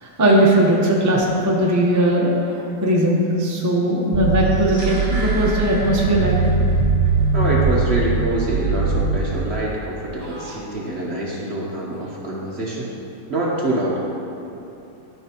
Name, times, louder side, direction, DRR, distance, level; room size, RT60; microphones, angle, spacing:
voice 1, 0.0-6.4 10.2-10.6, right 1 dB, 15° right, -3 dB, 0.6 m, -19 dB
sound 1, 4.1-9.2, right 4 dB, 85° right, 1.3 m, -21 dB
sound 2, 4.3-6.8 7.0-7.1, right 1 dB, 25° left, 1.1 m, -34 dB
voice 2, 7.3-12.9 13.3-14.0, right 1 dB, 45° right, -4 dB, 1.0 m, -25 dB
12.0 x 5.7 x 2.9 m, 2.9 s
omnidirectional pair, 1.9 m